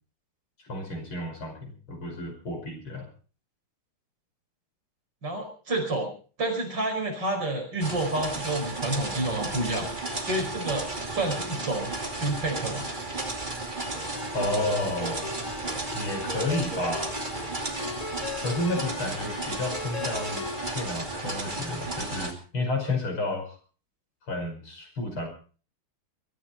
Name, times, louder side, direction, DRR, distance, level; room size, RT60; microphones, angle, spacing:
voice 1, 0.7-3.1 14.3-15.4 15.9-17.2 18.4-20.4 20.7-23.6 24.3-25.3, left 2 dB, 75° left, 2 dB, 6.3 m, -31 dB
voice 2, 5.2-6.1 6.4-9.9 10.2-11.9 12.2-12.9, right 2 dB, 55° right, 2 dB, 5.7 m, -29 dB
sound 1, 7.8-22.3, right 2 dB, 20° right, 2.6 m, -34 dB
Ringtone, 13.9-20.8, left 3 dB, 30° left, 0.7 m, -38 dB
22.5 x 14.0 x 4.3 m, 0.39 s
omnidirectional pair, 2.3 m